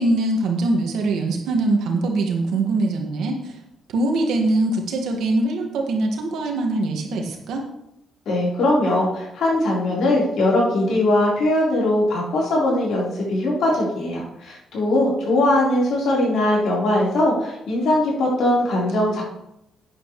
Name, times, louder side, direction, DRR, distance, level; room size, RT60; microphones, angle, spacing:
voice 1, 0.0-3.5 3.9-7.6, right 2 dB, 90° right, 2 dB, 1.9 m, -22 dB
voice 2, 8.3-19.2, left 1 dB, 70° left, -5 dB, 4.2 m, -20 dB
11.5 x 9.3 x 3.3 m, 0.82 s
cardioid pair, 160°, 0 cm